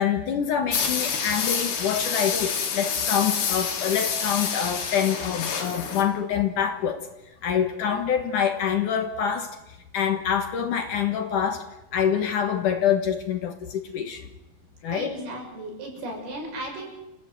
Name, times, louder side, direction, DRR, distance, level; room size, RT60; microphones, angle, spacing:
voice 1, 0.0-7.0 7.4-9.6 9.9-11.6 11.9-14.3 14.8-15.2, left 8 dB, 60° left, 7 dB, 2.7 m, -26 dB
sound 1, 0.7-6.0, left 6 dB, 90° left, 5.1 m, -28 dB
voice 2, 14.9-16.9, right 1 dB, 70° right, 1 dB, 8.3 m, -35 dB
28.5 x 16.5 x 7.9 m, 0.96 s
omnidirectional pair, 4.5 m